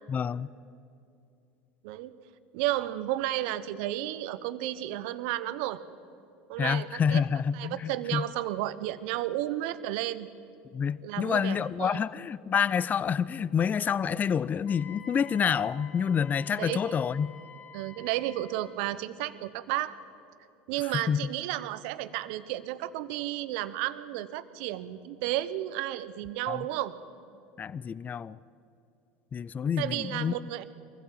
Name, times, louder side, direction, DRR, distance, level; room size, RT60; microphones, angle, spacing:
voice 1, 0.1-0.5 6.6-8.3 10.7-17.3 21.1-21.2 26.5-26.6 27.6-28.4 29.3-30.3, left 7 dB, 30° left, 0.5 m, -28 dB
voice 2, 2.5-5.8 6.5-7.2 7.5-10.3 11.0-12.0 16.6-17.0 17.7-19.9 20.7-27.0 29.8-30.6, right 14 dB, 65° right, 1.0 m, -32 dB
Wind instrument woodwind instrument, 14.7-18.8, left 5 dB, 65° left, 2.4 m, -50 dB
23.5 x 15.0 x 7.7 m
hypercardioid pair, 85°, 6 cm